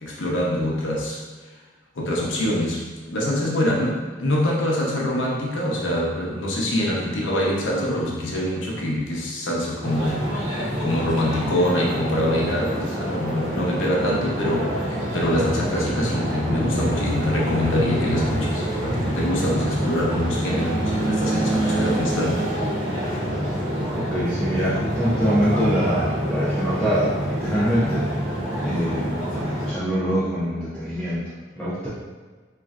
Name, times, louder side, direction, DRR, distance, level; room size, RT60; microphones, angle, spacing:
voice 1, 0.0-1.2 2.0-10.2 10.8-22.4, left 1 dB, 85° left, -3 dB, 0.7 m, -24 dB
sound 1, 9.8-29.7, equal, 75° right, 0.9 m, -26 dB
voice 2, 23.9-28.1 28.6-31.2 31.6-31.9, equal, 5° left, -10 dB, 0.4 m, -24 dB
3.2 x 2.5 x 2.4 m, 1.4 s
head